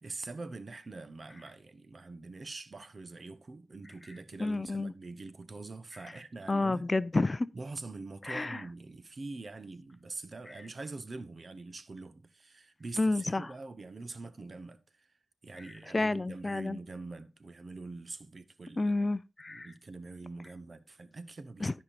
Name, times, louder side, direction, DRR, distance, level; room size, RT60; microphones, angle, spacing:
voice 1, 0.0-6.9 7.5-15.1 15.4-19.0 19.5-21.8, right 3 dB, 55° right, 1.2 m, -44 dB
voice 2, 4.4-4.9 6.5-7.5 8.2-8.6 13.0-13.5 15.9-16.8 18.8-19.7 21.6-21.7, left 2 dB, 35° left, 0.5 m, -30 dB
13.5 x 5.4 x 4.2 m
cardioid pair, 45°, 0 cm